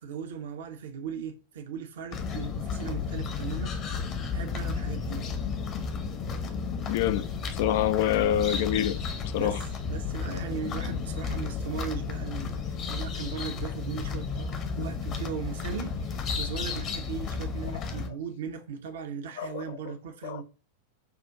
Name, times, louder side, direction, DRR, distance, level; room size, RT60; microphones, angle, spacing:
voice 1, 0.0-3.8 4.3-5.3 9.4-12.6 12.9-20.4, right 6 dB, 60° right, 0.7 m, -38 dB
sound 1, 2.1-18.1, left 5 dB, 35° left, 0.9 m, -33 dB
voice 2, 6.9-9.0 9.3-9.6 17.7-17.8 19.4-19.6 20.2-20.4, left 11 dB, 50° left, 0.4 m, -26 dB
5.7 x 2.5 x 3.6 m
figure-of-eight pair, 90°, 0 cm